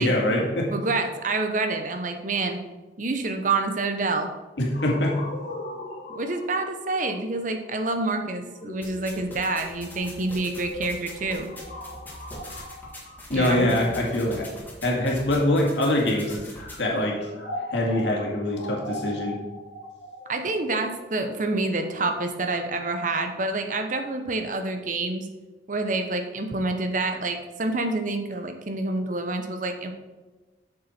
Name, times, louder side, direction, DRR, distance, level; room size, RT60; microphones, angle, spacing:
voice 1, 0.0-0.7 4.6-5.2 13.3-14.5 14.8-16.5 16.8-17.3 17.7-19.4, left 1 dB, 75° left, -1 dB, 2.0 m, -24 dB
voice 2, 0.7-2.6 3.0-4.3 6.1-11.5 13.3-13.7 20.3-25.3 25.7-29.9, right 3 dB, 45° right, 5 dB, 0.9 m, -27 dB
sound 1, 4.7-14.6 15.3-22.3, left 1 dB, 55° left, 1.9 m, -40 dB
sound 2, 8.8-16.8, equal, 10° left, 1.6 m, -42 dB
7.5 x 6.8 x 4.4 m, 1.2 s
head